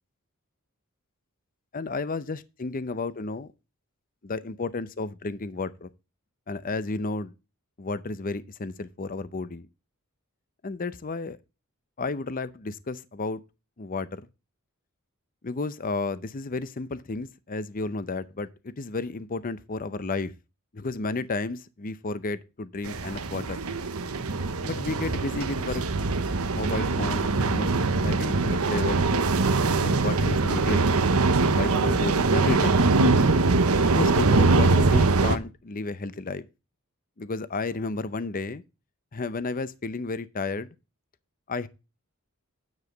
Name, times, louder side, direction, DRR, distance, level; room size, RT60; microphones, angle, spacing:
voice 1, 1.7-3.5 4.2-5.9 6.5-7.3 7.8-9.7 10.6-11.4 12.0-13.4 13.8-14.3 15.4-20.3 20.7-23.6 24.6-25.8 26.5-29.1 29.8-30.8 31.4-32.8 33.8-36.5 37.2-38.6 39.1-40.7 41.5-41.7, left 3 dB, 40° left, 0.6 m, -32 dB
sound 1, 22.8-35.4, right 3 dB, 80° right, 1.0 m, -23 dB
9.7 x 7.2 x 3.9 m
head